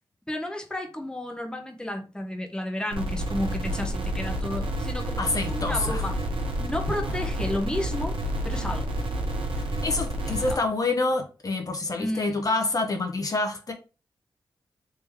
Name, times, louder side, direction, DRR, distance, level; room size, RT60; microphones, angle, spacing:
voice 1, 0.3-6.2 6.6-8.1 8.4-8.9 10.2-10.6 12.0-12.5, left 1 dB, 10° left, 0.9 m, -32 dB
sound 1, 2.9-10.5, equal, 80° right, 1.0 m, -29 dB
voice 2, 5.2-6.0 7.1-7.2 9.8-13.7, left 3 dB, 45° left, 0.8 m, -27 dB
3.4 x 3.0 x 3.4 m
cardioid pair, 60°, 9 cm